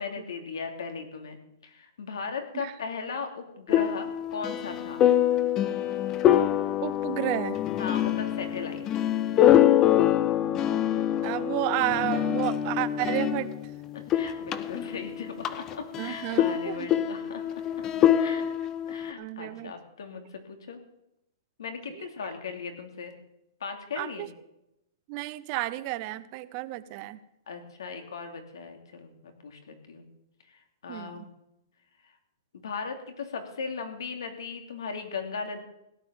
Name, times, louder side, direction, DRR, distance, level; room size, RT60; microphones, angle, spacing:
voice 1, 0.0-5.0 7.8-8.8 13.9-17.5 18.2-18.4 18.9-20.8 21.6-23.2 23.6-24.3 27.5-30.1 30.5-31.3 32.0-32.1 32.6-35.6, left 5 dB, 85° left, 5 dB, 2.9 m, -38 dB
sound 1, 3.7-13.7 14.0-19.1, left 11 dB, 20° left, 0.6 m, -25 dB
voice 2, 6.8-7.6 11.2-13.5 16.0-16.9 19.2-19.7 21.9-22.1 24.0-24.3 25.1-27.2 30.9-31.3, right 17 dB, 30° right, 15 dB, 0.7 m, -31 dB
16.5 x 9.2 x 7.1 m, 0.86 s
hypercardioid pair, 165°, 2 cm